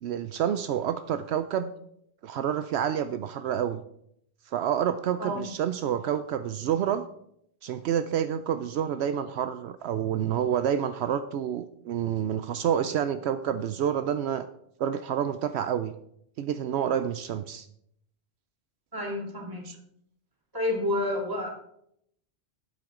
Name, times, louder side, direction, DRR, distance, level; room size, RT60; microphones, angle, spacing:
voice 1, 0.0-1.7 2.2-3.8 4.5-7.1 7.6-14.5 14.8-15.9 16.4-17.7 19.7-19.8, right 9 dB, 80° right, 11 dB, 0.8 m, -28 dB
voice 2, 18.9-19.7 20.5-21.5, left 1 dB, 20° right, -1 dB, 2.4 m, -29 dB
12.0 x 9.0 x 3.7 m, 0.72 s
omnidirectional pair, 1.1 m